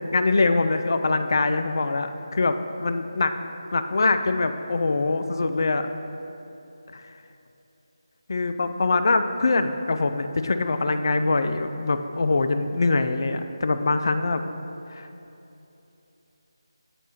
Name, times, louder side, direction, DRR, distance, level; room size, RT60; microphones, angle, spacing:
voice 1, 0.1-3.3 3.7-5.9 6.9-7.0 8.3-14.4 14.9-15.1, left 3 dB, 45° left, 8 dB, 0.3 m, -23 dB
7.2 x 4.7 x 4.1 m, 3.0 s
figure-of-eight pair, 160°, 3 cm